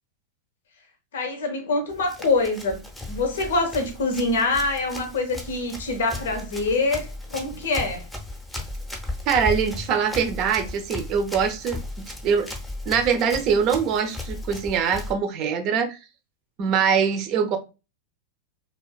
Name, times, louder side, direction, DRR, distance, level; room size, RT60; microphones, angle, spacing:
voice 1, 1.1-8.1, left 3 dB, 75° left, 0.6 m, -25 dB
Run, 1.9-15.1, left 2 dB, 5° left, 0.6 m, -36 dB
voice 2, 9.3-12.5 12.9-16.0 16.6-17.6, right 7 dB, 45° right, 0.5 m, -23 dB
2.4 x 2.3 x 2.3 m
hypercardioid pair, 100°, 0 cm